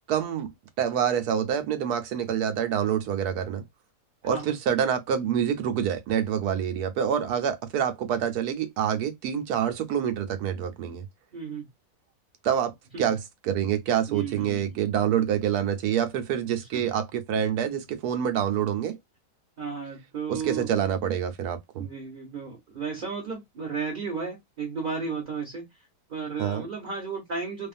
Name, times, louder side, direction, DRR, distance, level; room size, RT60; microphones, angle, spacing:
voice 1, 0.1-0.5 0.8-3.6 4.2-11.1 12.4-19.0 20.3-21.9 26.4-26.7, right 9 dB, 70° right, 1.2 m, -27 dB
voice 2, 4.2-4.6 11.3-11.7 12.9-13.1 14.1-14.8 16.6-16.9 19.6-20.7 21.8-25.7 26.1-27.7, right 5 dB, 35° right, 1.0 m, -34 dB
2.8 x 2.4 x 2.4 m
omnidirectional pair, 1.8 m